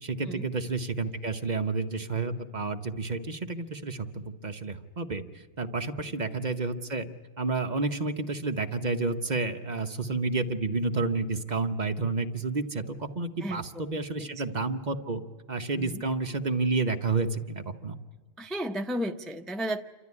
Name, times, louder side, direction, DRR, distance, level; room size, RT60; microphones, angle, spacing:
voice 1, 0.0-7.1 7.4-15.2 15.5-18.0, right 3 dB, 40° right, 6 dB, 0.9 m, -30 dB
voice 2, 13.4-14.3 15.8-16.0 18.4-19.8, equal, ahead, 4 dB, 0.5 m, -34 dB
28.5 x 13.0 x 9.6 m, 1.4 s
omnidirectional pair, 1.3 m